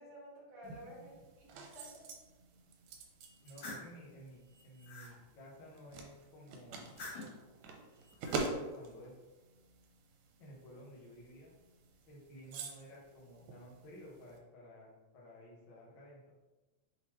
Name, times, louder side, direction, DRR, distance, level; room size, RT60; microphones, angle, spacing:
voice 1, 0.0-2.0, equal, 60° right, -4 dB, 1.5 m, -52 dB
sound 1, 0.6-14.4, right 3 dB, 80° right, 2.0 m, -47 dB
sound 2, 3.2-3.9 4.5-5.1 6.7-7.4 8.0-8.5, left 2 dB, 75° left, 2.8 m, -48 dB
voice 2, 3.4-6.9 8.5-9.2 10.4-11.5 12.1-16.3, equal, 60° left, -5 dB, 1.3 m, -54 dB
5.5 x 3.0 x 3.0 m, 1.2 s
omnidirectional pair, 3.6 m